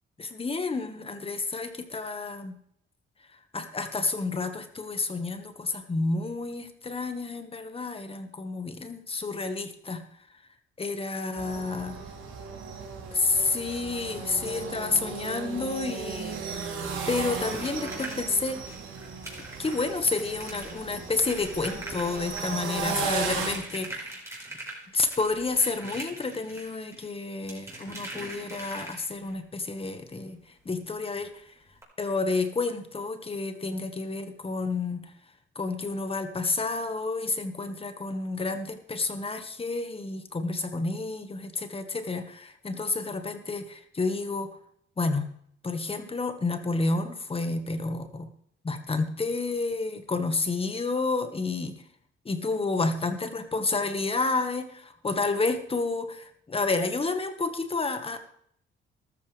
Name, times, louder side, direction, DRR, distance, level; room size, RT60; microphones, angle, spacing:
voice 1, 0.2-2.6 3.5-10.0 10.8-11.9 13.1-16.4 17.1-18.6 19.6-24.1 24.9-30.4 30.6-31.5 32.0-35.0 35.5-44.6 45.0-45.3 45.6-48.3 48.6-51.8 52.2-58.2, left 3 dB, 30° left, 8 dB, 1.7 m, -30 dB
sound 1, 11.4-23.6, right 5 dB, 85° right, 3.6 m, -35 dB
sound 2, 17.4-29.3 30.8-30.9 31.2-31.3 31.7-31.8, right 2 dB, 15° right, 5.1 m, -42 dB
13.5 x 13.5 x 3.5 m, 0.68 s
cardioid pair, 90°, 20 cm